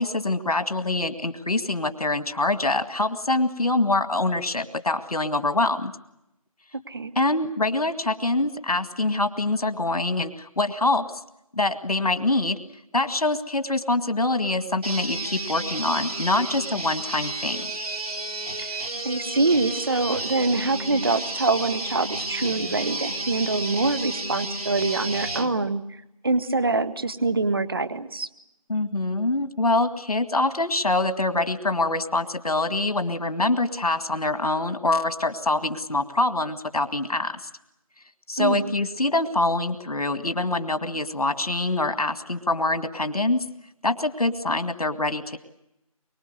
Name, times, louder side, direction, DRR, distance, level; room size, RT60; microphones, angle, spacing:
voice 1, 0.0-5.9 7.2-11.1 11.5-12.6 12.9-17.7 28.7-37.4 38.3-43.4 43.8-45.4, left 2 dB, 90° left, 9 dB, 2.0 m, -25 dB
sound 1, 14.8-25.5, right 2 dB, 85° right, 2.9 m, -32 dB
voice 2, 19.0-26.0 26.2-28.3 38.4-38.7, right 3 dB, 40° right, 13 dB, 1.0 m, -25 dB
24.0 x 23.0 x 8.0 m, 0.86 s
figure-of-eight pair, 175°, 19 cm